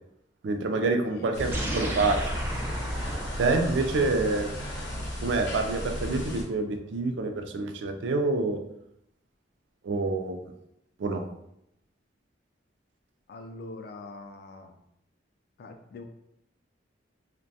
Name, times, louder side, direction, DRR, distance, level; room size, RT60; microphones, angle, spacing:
voice 1, 0.4-2.2 3.4-4.5 5.2-8.6 9.8-10.4 11.0-11.2, right 3 dB, 85° right, 5 dB, 0.4 m, -27 dB
sound 1, 1.3-6.4, equal, 85° left, 0.6 m, -34 dB
sound 2, 1.5-6.2, right 1 dB, 15° right, 0.4 m, -37 dB
voice 2, 13.3-14.8 15.6-16.0, left 2 dB, 60° left, 5 dB, 0.3 m, -43 dB
2.5 x 2.1 x 2.7 m, 0.78 s
head